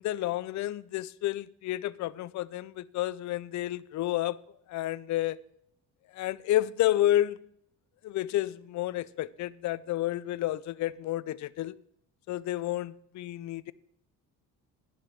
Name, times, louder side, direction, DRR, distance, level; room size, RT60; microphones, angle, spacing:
voice 1, 0.0-4.4 4.7-5.4 6.1-7.4 8.0-11.7 12.3-13.7, left 14 dB, 50° left, 0.5 m, -30 dB
10.5 x 5.1 x 7.6 m
cardioid pair, 90°, 37 cm